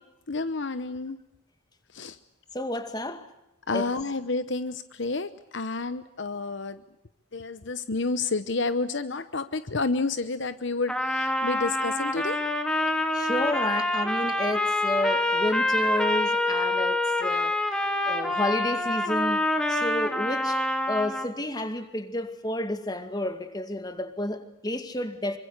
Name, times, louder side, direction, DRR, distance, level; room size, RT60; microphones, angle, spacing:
voice 1, 0.3-1.2 1.9-2.2 3.7-6.8 7.3-12.4, left 3 dB, 60° left, 1.0 m, -30 dB
voice 2, 2.5-3.3 3.7-3.9 13.1-17.6 18.1-20.6 20.9-25.4, left 1 dB, 20° left, 2.2 m, -30 dB
Trumpet, 10.9-21.3, left 1 dB, 5° left, 2.4 m, -26 dB
26.5 x 25.0 x 8.2 m
head